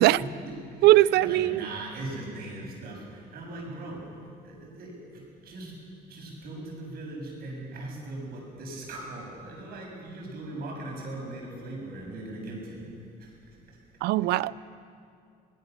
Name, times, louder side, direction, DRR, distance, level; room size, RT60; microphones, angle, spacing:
voice 1, 0.2-4.1 4.4-5.8 6.1-12.9 13.2-13.3 13.7-13.8 14.4-14.5, right 2 dB, 65° right, 7.2 m, -39 dB
voice 2, 0.8-1.7 14.0-14.5, right 16 dB, 80° right, 0.5 m, -20 dB
26.5 x 19.0 x 6.9 m
cardioid pair, 110°, 17 cm